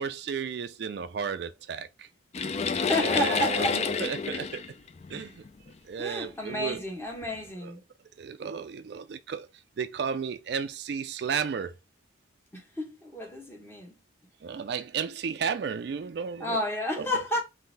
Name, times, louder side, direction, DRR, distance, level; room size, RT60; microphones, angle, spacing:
voice 1, 0.0-2.1 3.0-4.6 5.1-5.4 5.9-6.8 7.6-7.7 8.2-9.5 9.8-11.7 14.4-16.6 17.0-17.1, right 6 dB, 55° right, 0.3 m, -33 dB
sound 1, 2.3-5.7 6.5-6.6 7.2-7.4, left 5 dB, 35° left, 0.3 m, -29 dB
voice 2, 2.7-4.0 6.0-7.8 12.5-14.0 16.4-17.4, left 1 dB, 10° left, 1.0 m, -31 dB
3.8 x 2.7 x 3.9 m
head